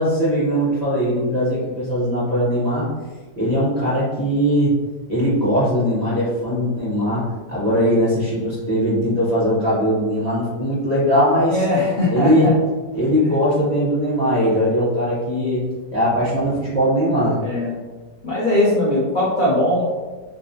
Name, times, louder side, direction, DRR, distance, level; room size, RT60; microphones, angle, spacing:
voice 1, 0.0-2.9 3.4-4.8 5.1-7.2 7.5-11.6 12.1-12.5 12.9-15.6 15.9-17.4, equal, 35° right, -10 dB, 0.7 m, -20 dB
voice 2, 11.5-12.5 17.4-17.7 18.2-19.8, left 1 dB, 80° left, -8 dB, 0.4 m, -20 dB
3.6 x 2.3 x 2.6 m, 1.3 s
omnidirectional pair, 1.8 m